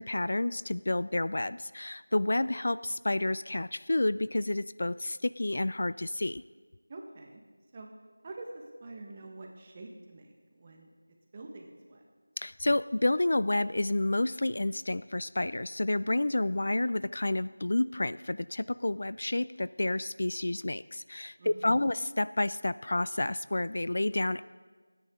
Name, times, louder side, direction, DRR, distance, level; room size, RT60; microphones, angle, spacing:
voice 1, 0.0-6.4 12.4-24.4, left 2 dB, 55° left, 17 dB, 0.3 m, -30 dB
voice 2, 6.9-7.4 7.7-7.9 8.2-10.9 11.3-12.0 21.4-21.9, right 2 dB, 20° right, 2 dB, 1.4 m, -46 dB
28.5 x 9.9 x 3.8 m, 1.5 s
figure-of-eight pair, 175°, 0 cm